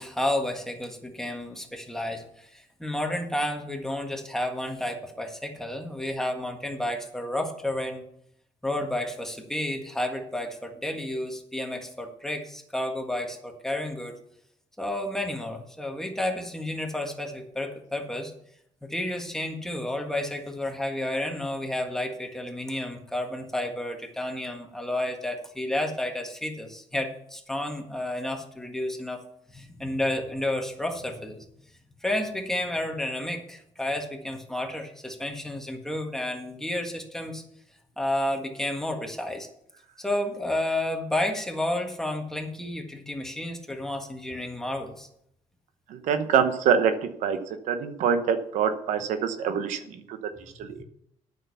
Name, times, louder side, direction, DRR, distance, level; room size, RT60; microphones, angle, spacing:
voice 1, 0.0-8.0 8.6-14.1 14.8-18.3 18.8-29.2 29.5-31.4 32.0-37.4 38.0-39.5 40.0-45.1, left 1 dB, 5° left, 3 dB, 1.6 m, -31 dB
voice 2, 45.9-47.4 47.7-50.2 50.6-50.8, right 7 dB, 85° right, 9 dB, 1.0 m, -25 dB
9.0 x 6.5 x 7.0 m, 0.74 s
cardioid pair, 115°, 12 cm